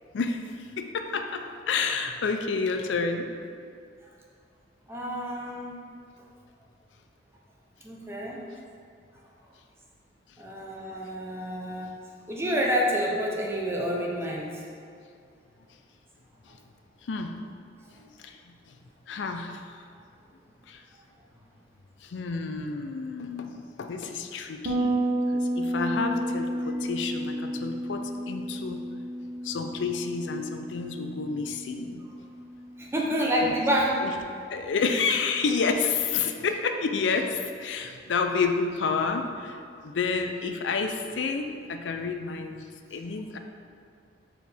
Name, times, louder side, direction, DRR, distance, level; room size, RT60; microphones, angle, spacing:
voice 1, 0.1-3.3 16.5-16.6 17.0-17.3 18.0-18.6 19.1-19.8 20.7-20.8 22.0-25.0 25.3-28.9 29.4-32.0 33.4-33.5 34.0-34.1 34.5-43.4, left 4 dB, 90° left, 5 dB, 0.4 m, -30 dB
voice 2, 4.9-5.7 7.8-8.4 10.4-11.9 12.3-14.6 32.8-33.9, equal, 15° right, -3 dB, 0.7 m, -28 dB
Bass guitar, 24.7-34.0, right 1 dB, 60° right, 0.8 m, -32 dB
6.3 x 4.4 x 3.5 m, 2.3 s
head